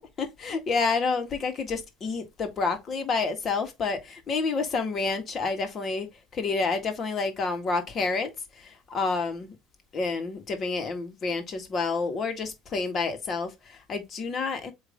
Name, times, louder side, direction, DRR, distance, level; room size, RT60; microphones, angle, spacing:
voice 1, 0.2-6.1 6.3-8.3 8.6-9.5 9.9-14.7, left 4 dB, 35° left, 2.0 m, -29 dB
8.1 x 3.2 x 3.7 m
cardioid pair, 125°, 0 cm